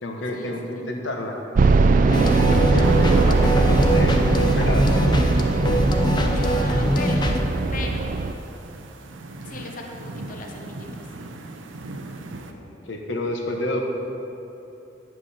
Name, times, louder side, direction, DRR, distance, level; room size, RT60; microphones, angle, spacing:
voice 1, 0.0-1.4 2.7-4.9 12.3-13.8, left 1 dB, 75° left, 2 dB, 1.1 m, -30 dB
sound 1, 1.5-8.3, right 3 dB, 45° right, 0.3 m, -20 dB
voice 2, 2.1-2.7 6.2-7.3 7.7-8.1 9.4-10.0 10.3-10.9, left 2 dB, 45° left, 2 dB, 0.9 m, -36 dB
sound 2, 2.1-7.4, equal, 25° left, 0.6 m, -22 dB
sound 3, 2.8-12.5, right 2 dB, 90° right, 0.6 m, -38 dB
9.7 x 7.7 x 4.3 m, 2.9 s
head